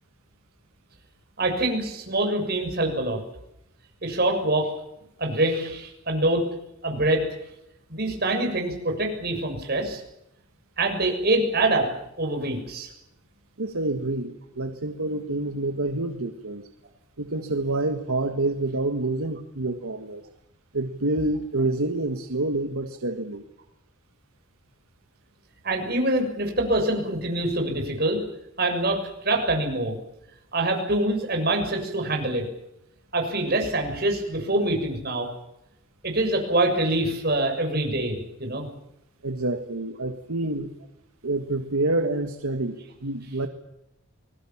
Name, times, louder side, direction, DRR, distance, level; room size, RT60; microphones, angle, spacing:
voice 1, 1.4-3.2 4.0-4.7 5.2-6.4 6.8-7.3 7.9-10.0 10.8-11.9 12.2-12.9 25.6-28.2 28.6-29.9 30.5-32.5 33.1-35.3 36.0-38.7, right 1 dB, 45° right, 2 dB, 6.8 m, -25 dB
voice 2, 13.6-16.6 17.2-20.2 20.7-23.4 39.2-40.7 41.2-43.5, right 2 dB, 80° right, 6 dB, 1.7 m, -27 dB
29.0 x 21.0 x 7.3 m, 0.85 s
head